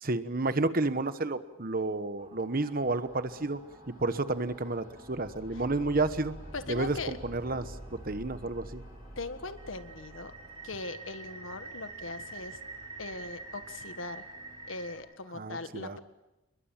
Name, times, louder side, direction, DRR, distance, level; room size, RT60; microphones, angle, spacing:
voice 1, 0.0-3.6 3.9-6.3 6.7-7.8 8.0-8.8 15.4-16.0, right 2 dB, 45° right, 12 dB, 1.2 m, -31 dB
sound 1, 2.2-14.9, right 2 dB, 25° right, 4.9 m, -47 dB
sound 2, 2.8-15.1, left 1 dB, 40° left, 7.1 m, -57 dB
voice 2, 6.5-7.2 9.2-10.3 10.6-12.6 13.0-14.3 14.7-16.0, left 3 dB, 75° left, 9 dB, 1.7 m, -40 dB
29.0 x 22.0 x 7.4 m, 0.99 s
head